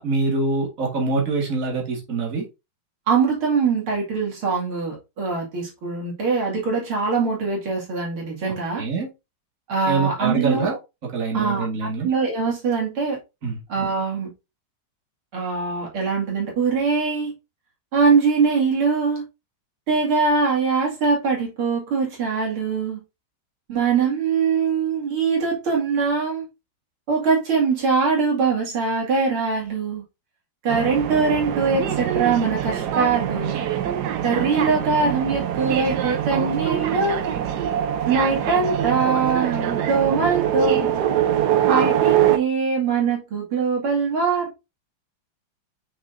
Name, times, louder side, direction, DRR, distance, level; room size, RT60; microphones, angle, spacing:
voice 1, 0.0-2.5 8.8-9.1 9.9-10.7 11.1-12.1 13.4-13.6, right 3 dB, 40° right, 2.3 m, -24 dB
voice 2, 3.1-8.8 9.7-10.8 11.3-13.2 13.7-14.3 15.3-17.3 17.9-19.2 19.9-23.0 23.7-26.5 27.1-30.0 30.6-33.6 34.2-37.3 38.1-40.9 41.7-44.5, right 5 dB, 90° right, 3.3 m, -22 dB
sound 1, 30.7-42.4, right 10 dB, 65° right, 1.2 m, -23 dB
6.0 x 6.0 x 2.7 m
omnidirectional pair, 2.3 m